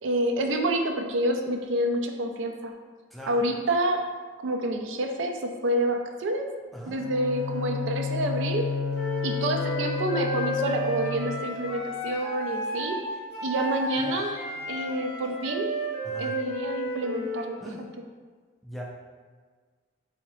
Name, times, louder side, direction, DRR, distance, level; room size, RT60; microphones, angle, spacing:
voice 1, 0.0-2.7 3.3-4.0 4.4-6.5 6.9-8.7 9.2-13.0 13.4-15.7 16.2-17.6, right 1 dB, 75° right, 4 dB, 0.4 m, -28 dB
voice 2, 3.1-3.5 6.7-7.0 13.9-14.2 16.0-16.3 17.6-17.9 18.6-18.8, equal, ahead, -3 dB, 0.3 m, -40 dB
Bowed string instrument, 6.9-11.8, left 5 dB, 80° left, 0.6 m, -31 dB
Wind instrument woodwind instrument, 8.9-17.5, equal, 30° left, 0.7 m, -33 dB
4.0 x 2.7 x 3.0 m, 1.5 s
head